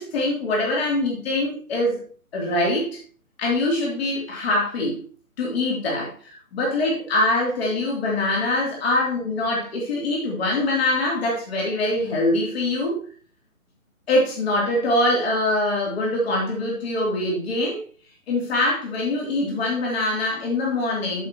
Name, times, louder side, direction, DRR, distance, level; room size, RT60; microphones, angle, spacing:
voice 1, 0.0-2.0 2.3-3.0 3.4-5.0 5.4-13.0 14.1-17.8 18.3-21.3, left 2 dB, 45° left, -3 dB, 3.1 m, -23 dB
13.5 x 5.7 x 3.0 m, 0.42 s
figure-of-eight pair, 140°, 43 cm